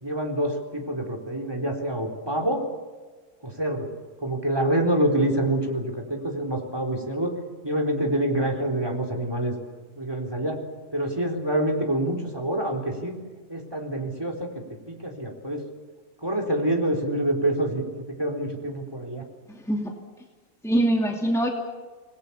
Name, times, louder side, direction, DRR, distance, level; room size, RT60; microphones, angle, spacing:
voice 1, 0.0-2.6 3.4-3.9 4.2-7.3 7.6-9.5 10.0-10.6 10.9-13.1 13.5-15.6 16.2-19.2, right 1 dB, 15° right, 3 dB, 4.1 m, -26 dB
voice 2, 19.5-20.0 20.6-21.5, right 1 dB, ahead, 1 dB, 2.6 m, -23 dB
27.5 x 20.5 x 7.1 m, 1.4 s
omnidirectional pair, 1.6 m